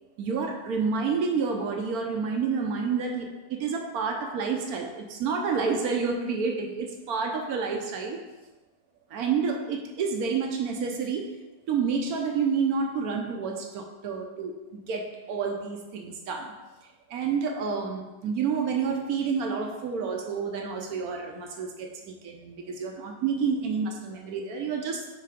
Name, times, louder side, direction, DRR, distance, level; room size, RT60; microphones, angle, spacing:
voice 1, 0.2-8.2 9.1-11.4 11.7-16.7 17.1-25.1, right 5 dB, 80° right, 3 dB, 1.2 m, -29 dB
8.4 x 3.3 x 4.9 m, 1.1 s
omnidirectional pair, 1.6 m